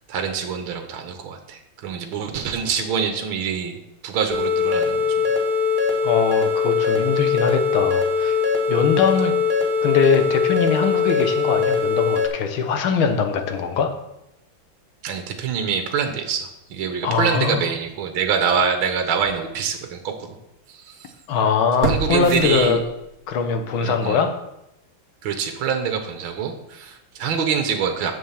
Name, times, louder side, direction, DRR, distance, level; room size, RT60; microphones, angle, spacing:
voice 1, 0.1-3.8 4.0-5.3 15.0-20.4 20.7-21.1 21.8-22.8 23.8-24.2 25.2-28.1, right 6 dB, 70° right, 5 dB, 1.8 m, -25 dB
sound 1, 4.3-12.3, left 5 dB, 25° right, 1.3 m, -21 dB
voice 2, 6.0-8.4 8.7-9.3 9.8-13.9 17.0-17.6 21.3-22.8 23.3-24.3, left 5 dB, 75° left, 6 dB, 1.9 m, -21 dB
sound 2, 18.5-18.7 19.2-19.3 21.8-23.3 23.6-23.7, right 5 dB, 50° right, 1.3 m, -27 dB
7.3 x 7.2 x 7.3 m, 0.89 s
omnidirectional pair, 2.3 m